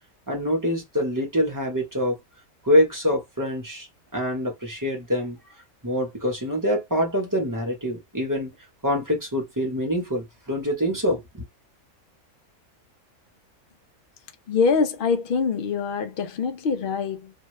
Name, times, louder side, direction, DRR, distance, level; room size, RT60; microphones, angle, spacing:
voice 1, 0.3-2.2 2.6-3.9 4.1-5.4 5.8-8.5 8.8-11.4, equal, 15° right, 0.9 m, -25 dB
voice 2, 14.5-17.3, left 5 dB, 60° left, 0.5 m, -24 dB
2.8 x 2.2 x 3.1 m
omnidirectional pair, 1.5 m